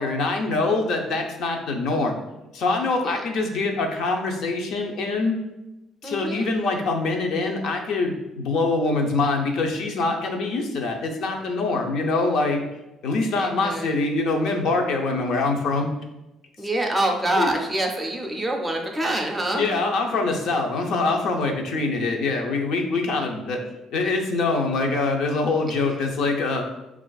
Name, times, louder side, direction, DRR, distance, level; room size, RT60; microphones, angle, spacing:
voice 1, 0.0-2.1 2.5-5.4 6.0-12.6 13.0-15.9 17.4-17.5 19.5-23.6 23.9-26.6, left 3 dB, 60° left, 2 dB, 0.6 m, -24 dB
voice 2, 6.0-6.5 13.4-13.9 16.6-19.7, right 1 dB, 10° right, 1 dB, 0.5 m, -26 dB
5.8 x 2.4 x 2.3 m, 0.97 s
cardioid pair, 155°, 0 cm